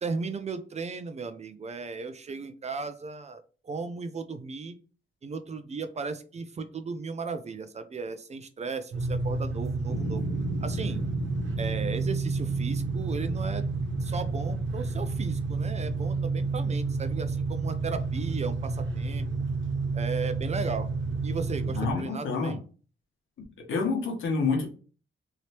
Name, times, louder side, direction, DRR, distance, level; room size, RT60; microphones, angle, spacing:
voice 1, 0.0-4.8 5.2-10.2 10.6-11.0 11.6-13.6 14.0-19.3 19.9-20.9 21.2-22.6, right 4 dB, 35° right, 10 dB, 0.3 m, -36 dB
sound 1, 8.9-21.9, right 4 dB, 70° right, 0.8 m, -30 dB
sound 2, 9.9-16.3, left 2 dB, 40° left, 0.9 m, -39 dB
voice 2, 21.7-22.6 23.6-24.7, left 4 dB, 75° left, 1 dB, 1.0 m, -28 dB
3.1 x 2.9 x 2.8 m, 0.38 s
wide cardioid pair, 140°, 20 cm